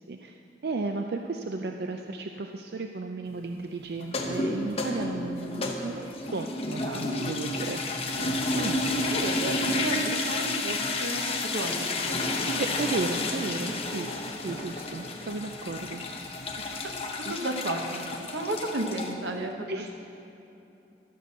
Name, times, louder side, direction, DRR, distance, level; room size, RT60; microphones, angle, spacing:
voice 1, 0.6-8.8 12.6-16.0 17.3-17.4 19.7-19.9, right 3 dB, 60° right, 4 dB, 0.4 m, -34 dB
sound 1, 4.0-19.1, left 2 dB, 35° left, 0.8 m, -31 dB
voice 2, 9.0-12.9 16.6-16.8 17.3-18.0 18.3-19.9, right 1 dB, 90° right, 3 dB, 1.1 m, -33 dB
13.5 x 6.0 x 6.4 m, 2.8 s
head